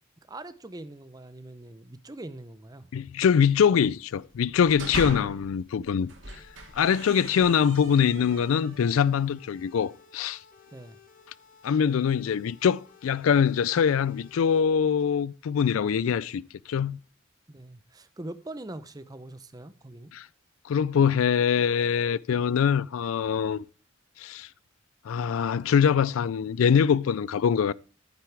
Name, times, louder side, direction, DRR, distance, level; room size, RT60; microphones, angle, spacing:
voice 1, 0.3-2.9 10.7-11.0 17.5-20.1, right 1 dB, 20° right, 0.6 m, -42 dB
voice 2, 2.9-6.4 6.7-10.4 11.6-16.4 16.7-17.0 20.1-20.3 20.6-23.6 24.2-24.5 25.1-27.7, left 7 dB, 85° left, 0.4 m, -23 dB
sound 1, 4.4-5.5 6.0-8.8, right 2 dB, 65° right, 2.5 m, -39 dB
sound 2, 6.4-14.6, left 6 dB, 40° left, 1.8 m, -56 dB
11.0 x 9.6 x 3.4 m
head